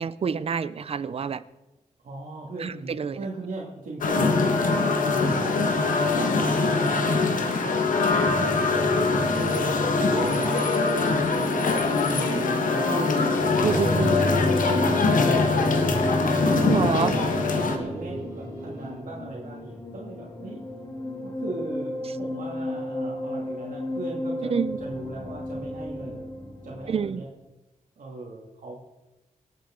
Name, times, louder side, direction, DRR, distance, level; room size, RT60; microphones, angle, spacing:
voice 1, 0.0-1.4 2.6-3.3 6.4-6.5 10.1-10.7 13.6-14.2 16.6-17.1 24.4-24.8 26.9-27.2, right 6 dB, 50° right, 15 dB, 0.5 m, -28 dB
voice 2, 2.0-7.1 7.6-14.6 14.8-20.6 21.2-26.3 26.6-27.3 28.0-28.8, right 2 dB, 90° right, -3 dB, 2.3 m, -38 dB
sound 1, 4.0-17.8, left 3 dB, 85° left, 1.5 m, -23 dB
sound 2, 8.3-27.1, left 1 dB, 25° left, 2.1 m, -33 dB
sound 3, 10.2-18.9, right 2 dB, 20° right, 4.4 m, -41 dB
25.5 x 8.8 x 3.8 m, 1.0 s
wide cardioid pair, 170°, 13 cm